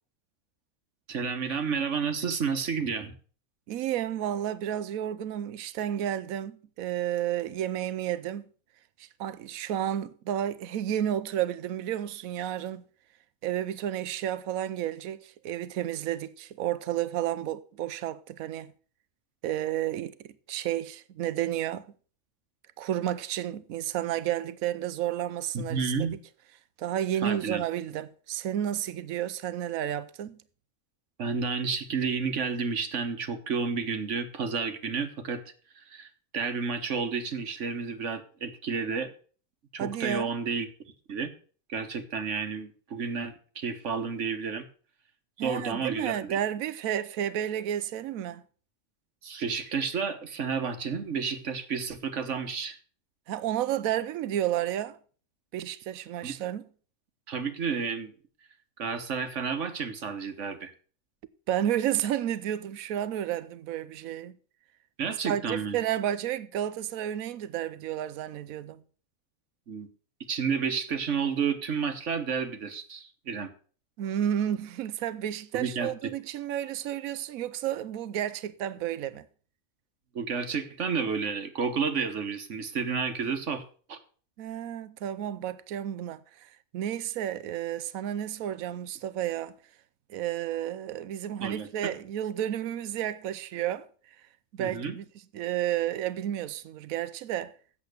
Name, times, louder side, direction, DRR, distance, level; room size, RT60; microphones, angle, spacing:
voice 1, 1.1-3.1 25.5-26.1 27.2-27.6 31.2-35.4 35.7-39.1 39.7-40.7 41.1-41.3 41.7-44.6 45.4-46.4 49.2-52.8 56.2-56.3 57.3-58.1 58.8-60.7 65.0-65.8 69.7-69.9 70.3-73.5 75.5-75.9 80.1-83.6 83.9-84.0 91.4-91.9 94.6-95.0, right 5 dB, 65° right, 1.4 m, -31 dB
voice 2, 3.7-8.5 9.0-12.8 13.4-18.7 19.4-21.9 22.8-26.1 26.8-30.4 39.8-40.3 45.4-48.4 53.3-55.0 55.5-56.7 61.5-64.4 65.2-68.8 74.0-79.3 84.4-89.5 90.1-94.3 94.5-95.0 95.3-97.5, right 11 dB, 85° right, 1.1 m, -31 dB
8.5 x 7.6 x 6.5 m
omnidirectional pair, 1.4 m